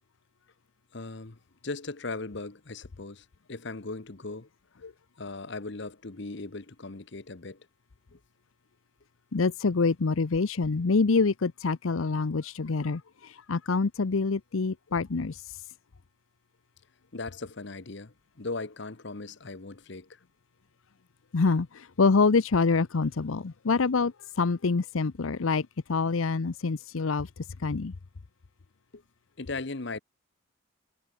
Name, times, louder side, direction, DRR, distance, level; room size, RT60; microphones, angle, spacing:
voice 1, 0.9-1.4 1.6-4.5 5.2-7.6 8.1-8.2 17.1-20.2 28.9-29.0 29.4-30.0, left 3 dB, 55° left, 1.1 m, -38 dB
voice 2, 9.3-15.6 21.3-27.3 27.6-27.9, left 4 dB, 75° left, 0.7 m, -26 dB
head